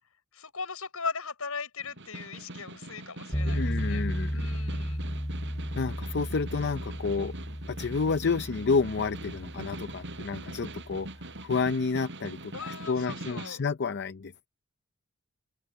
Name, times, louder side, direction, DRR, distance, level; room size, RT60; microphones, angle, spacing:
voice 1, 0.3-4.1 4.3-5.0 12.5-13.6, left 5 dB, 75° left, 6.4 m, -38 dB
Snare drum, 1.8-13.6, right 2 dB, 55° right, 7.7 m, -43 dB
sound 1, 3.3-11.5, equal, 15° left, 5.5 m, -34 dB
voice 2, 3.5-4.4 5.8-7.3 7.7-11.1 11.4-14.5, left 4 dB, 50° left, 0.6 m, -30 dB
open air
head